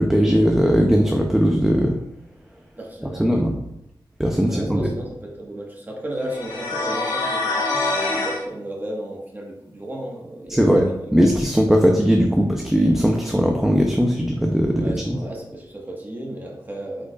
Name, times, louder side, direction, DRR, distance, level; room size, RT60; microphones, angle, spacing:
voice 1, 0.0-2.0 3.2-3.6 4.2-4.9 10.5-15.2, equal, 5° right, 1 dB, 0.5 m, -19 dB
voice 2, 2.8-3.4 4.3-11.1 14.8-17.0, right 1 dB, 20° right, -1 dB, 1.4 m, -34 dB
sound 1, 6.3-8.4, left 3 dB, 60° left, 1.8 m, -25 dB
8.2 x 4.9 x 2.4 m, 0.83 s
wide cardioid pair, 145°, 8 cm